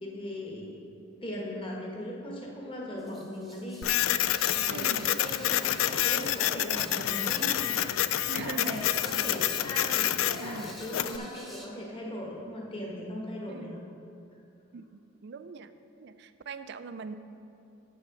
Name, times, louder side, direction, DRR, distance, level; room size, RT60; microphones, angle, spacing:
voice 1, 0.0-0.8 1.2-7.7 8.1-13.8, left 1 dB, 25° left, -2 dB, 1.3 m, -39 dB
sound 1, 3.0-11.7, right 1 dB, ahead, 0.8 m, -50 dB
Printer, 3.8-11.2, left 12 dB, 80° left, 0.3 m, -28 dB
voice 2, 4.7-5.1 8.3-9.4 10.4-10.8 11.1-11.4 13.5-13.9 14.7-14.8 15.2-15.7 16.0-17.1, right 4 dB, 55° right, 11 dB, 0.4 m, -41 dB
7.8 x 6.4 x 6.1 m, 2.7 s
head